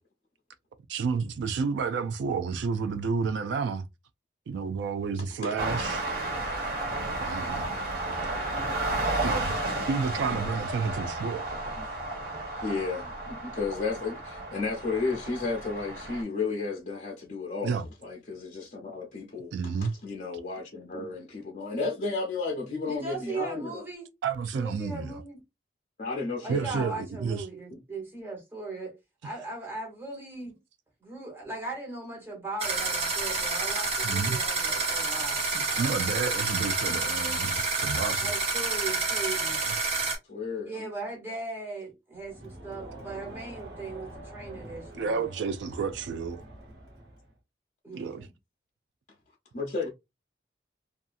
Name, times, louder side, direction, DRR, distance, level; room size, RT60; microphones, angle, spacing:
voice 1, 0.9-3.9 4.5-6.0 7.2-7.6 9.2-9.5 9.9-11.5 17.6-17.9 19.5-19.9 24.2-25.2 26.5-27.4 34.0-34.4 35.5-38.3 44.9-46.4 47.9-48.3, right 5 dB, 85° right, 0.3 m, -30 dB
sound 1, 5.6-16.2, right 2 dB, 50° right, 1.3 m, -32 dB
voice 2, 12.6-17.7 18.0-23.8 26.0-26.9 40.3-40.9 49.5-49.9, left 4 dB, 45° left, 0.5 m, -33 dB
voice 3, 22.9-24.1 24.5-25.4 26.4-29.0 29.2-30.5 31.0-35.4 35.7-35.9 36.9-37.1 38.2-39.6 40.7-45.3 47.8-48.3, right 3 dB, 15° right, 1.0 m, -38 dB
sound 2, 32.6-40.2, right 3 dB, 35° right, 0.7 m, -28 dB
Crowd, 42.2-47.4, right 1 dB, 65° right, 1.0 m, -45 dB
2.6 x 2.3 x 2.4 m
head